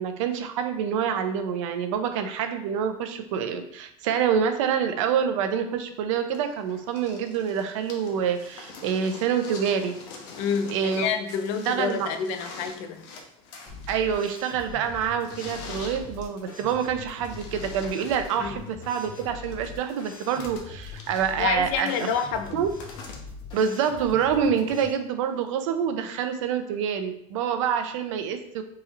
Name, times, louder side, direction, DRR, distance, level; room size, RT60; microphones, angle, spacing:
voice 1, 0.0-9.9 10.7-11.1 11.7-12.1 13.9-22.1 22.5-22.7 23.5-28.6, right 7 dB, 90° right, 7 dB, 0.7 m, -26 dB
sound 1, 6.3-24.4 25.5-25.6, left 4 dB, 80° left, 1.0 m, -45 dB
voice 2, 10.4-13.0 18.4-18.6 21.4-22.6, left 7 dB, 55° left, 7 dB, 0.6 m, -28 dB
sound 2, 13.7-24.9, left 5 dB, 30° left, 1.3 m, -42 dB
5.6 x 3.1 x 2.5 m, 0.73 s
cardioid pair, 165°, 16 cm